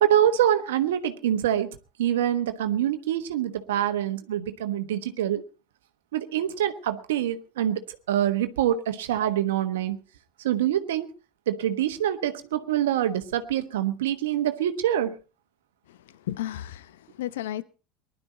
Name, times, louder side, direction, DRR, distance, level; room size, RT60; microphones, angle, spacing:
voice 1, 0.0-5.4 6.1-10.0 10.4-11.1 11.5-15.2, right 11 dB, 80° right, 1.2 m, -25 dB
voice 2, 15.9-17.6, left 13 dB, 80° left, 0.7 m, -34 dB
20.0 x 11.5 x 4.2 m
hypercardioid pair, 80°, 0 cm